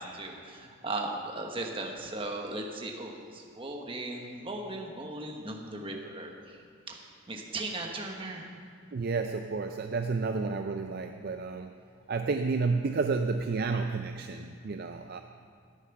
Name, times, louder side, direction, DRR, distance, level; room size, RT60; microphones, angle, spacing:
voice 1, 0.0-6.3 6.9-7.0 7.3-8.5, right 2 dB, 25° right, 2 dB, 1.1 m, -37 dB
voice 2, 8.9-11.7 12.1-15.2, right 4 dB, 45° right, 6 dB, 0.4 m, -31 dB
13.0 x 9.1 x 5.9 m, 2.3 s
head